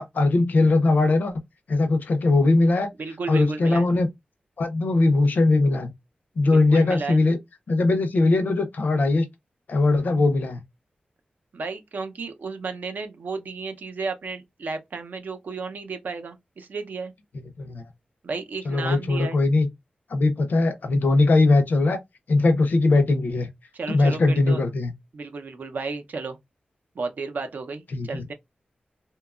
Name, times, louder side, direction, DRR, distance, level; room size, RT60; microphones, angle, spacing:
voice 1, 0.0-1.3 1.7-2.9 3.3-4.1 4.6-5.9 6.4-7.4 7.7-9.3 9.7-10.6 17.6-17.8 18.7-19.7 20.1-22.0 22.3-23.5 23.9-24.9 27.9-28.3, left 2 dB, 70° left, 0.5 m, -20 dB
voice 2, 3.0-3.9 6.5-7.2 11.5-17.1 18.2-19.4 23.7-24.6 25.1-26.4 27.0-28.3, right 4 dB, 70° right, 0.6 m, -33 dB
2.8 x 2.2 x 2.3 m
wide cardioid pair, 125°, 3 cm